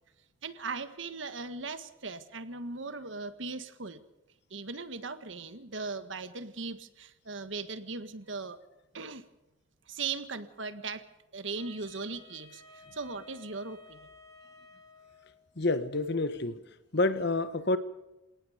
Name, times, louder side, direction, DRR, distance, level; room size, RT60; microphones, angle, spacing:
voice 1, 0.4-4.0 4.5-8.6 8.9-9.3 9.9-11.1 11.3-14.0, right 4 dB, 70° right, 11 dB, 1.6 m, -38 dB
Wind instrument woodwind instrument, 11.6-15.4, left 3 dB, 20° left, 7.0 m, -55 dB
voice 2, 15.6-16.6 16.9-17.8, left 2 dB, 55° left, 12 dB, 1.5 m, -28 dB
28.0 x 18.0 x 5.1 m, 0.97 s
head